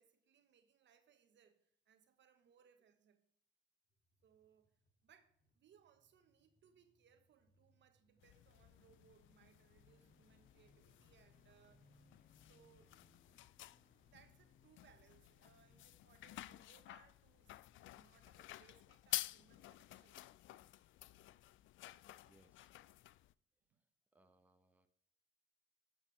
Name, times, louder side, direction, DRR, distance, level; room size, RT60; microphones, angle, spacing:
voice 1, 0.0-3.3 4.2-4.8 5.0-12.1 12.4-13.0 14.0-20.3 23.7-23.8, right 8 dB, 65° right, 1.3 m, -70 dB
sound 1, 3.9-19.1 19.4-19.5, left 2 dB, 45° left, 2.2 m, -74 dB
sound 2, 8.2-23.3, left 15 dB, 75° left, 0.4 m, -51 dB
voice 2, 22.2-22.8 23.7-23.9 24.1-24.9, right 2 dB, 10° right, 1.1 m, -72 dB
12.5 x 7.2 x 3.3 m
cardioid pair, 90°, 20 cm